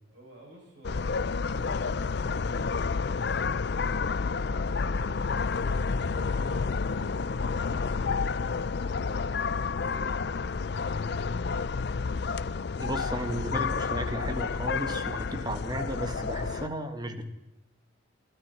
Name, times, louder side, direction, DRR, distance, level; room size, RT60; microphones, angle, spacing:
voice 1, 0.1-5.3 5.7-6.7 7.1-10.2 10.7-11.2, right 1 dB, 60° right, -2 dB, 7.9 m, -53 dB
sound 1, 0.8-16.7, left 4 dB, 55° left, 0.5 m, -30 dB
sound 2, 1.6-2.5 3.5-3.7 4.3-4.5 5.1-5.3 6.5-7.2 8.5-9.3, right 2 dB, 90° right, 2.5 m, -53 dB
voice 2, 12.7-17.3, equal, 20° right, 7 dB, 1.7 m, -34 dB
25.0 x 13.0 x 4.5 m, 0.96 s
head